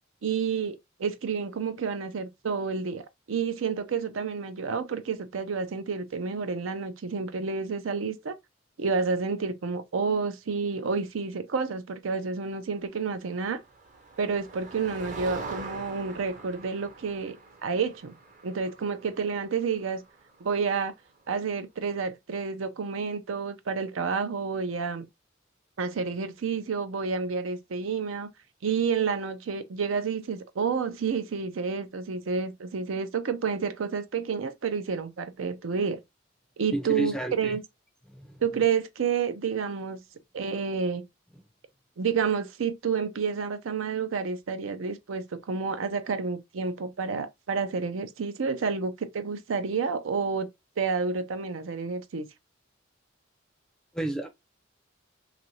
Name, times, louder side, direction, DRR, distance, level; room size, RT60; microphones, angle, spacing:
voice 1, 0.2-8.4 8.8-13.6 14.2-17.4 17.6-18.1 18.4-20.0 20.4-20.9 21.3-25.1 25.8-28.3 28.6-36.0 36.6-37.6 38.4-40.0 40.3-41.0 42.0-50.5 50.8-52.3, right 5 dB, 85° right, 0.5 m, -29 dB
Motor vehicle (road), 13.2-21.0, right 3 dB, 40° right, 0.7 m, -44 dB
voice 2, 36.7-37.6 38.1-38.4 53.9-54.3, right 1 dB, 5° left, 0.4 m, -31 dB
3.0 x 2.5 x 2.8 m
head